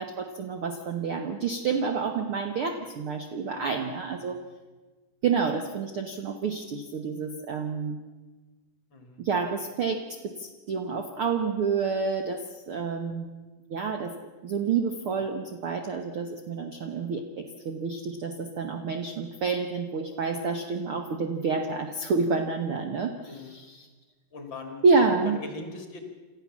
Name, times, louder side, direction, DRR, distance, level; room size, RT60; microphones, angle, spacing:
voice 1, 0.0-4.4 5.2-8.0 9.2-13.4 13.7-14.1 14.4-23.8 24.8-25.4, right 5 dB, 85° right, 5 dB, 1.2 m, -28 dB
voice 2, 8.9-9.2 23.2-23.6 24.3-26.0, left 3 dB, 35° left, 5 dB, 2.4 m, -41 dB
28.0 x 13.5 x 7.3 m, 1.3 s
omnidirectional pair, 4.3 m